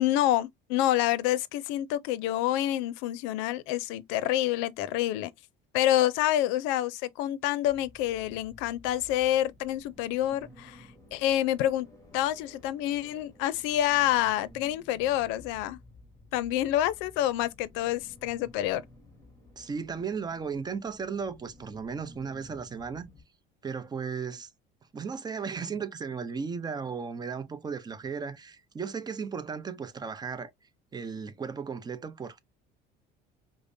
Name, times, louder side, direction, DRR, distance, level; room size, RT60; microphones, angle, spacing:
voice 1, 0.0-5.3 5.7-11.9 12.1-15.8 16.3-18.8, left 13 dB, 85° left, 0.4 m, -27 dB
sound 1, 7.6-23.2, left 2 dB, 15° left, 1.5 m, -54 dB
voice 2, 19.6-23.1 23.6-24.5 24.9-30.5 30.9-32.4, right 6 dB, 20° right, 0.5 m, -35 dB
5.0 x 2.0 x 2.6 m
cardioid pair, 125°, 19 cm